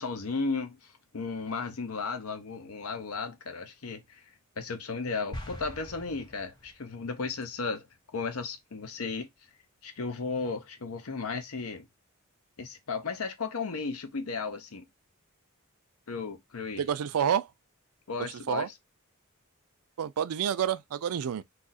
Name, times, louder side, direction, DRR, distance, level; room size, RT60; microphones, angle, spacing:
voice 1, 0.0-4.2 4.6-7.9 8.1-9.3 9.8-11.9 12.6-14.8 16.1-16.8 18.1-18.7, left 4 dB, 85° left, 0.7 m, -35 dB
sound 1, 5.3-6.9, left 1 dB, 20° left, 0.7 m, -43 dB
voice 2, 16.8-17.5 18.2-18.7 20.0-21.4, right 8 dB, 90° right, 0.4 m, -29 dB
2.7 x 2.4 x 4.0 m
head